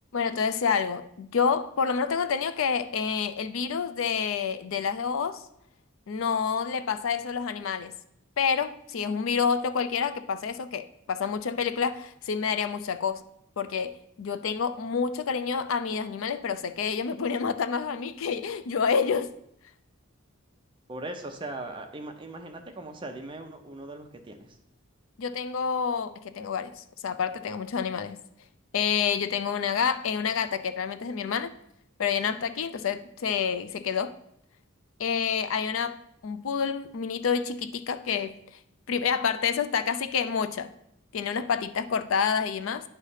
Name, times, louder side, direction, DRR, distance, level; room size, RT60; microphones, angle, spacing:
voice 1, 0.1-5.4 6.1-7.9 8.4-13.2 13.6-19.3 25.2-28.2 28.7-31.5 32.0-34.2 35.0-38.4 38.9-40.7 41.1-42.8, left 6 dB, 70° left, 0.4 m, -28 dB
voice 2, 20.9-24.6, right 2 dB, 25° right, 0.7 m, -39 dB
9.6 x 3.3 x 5.5 m
head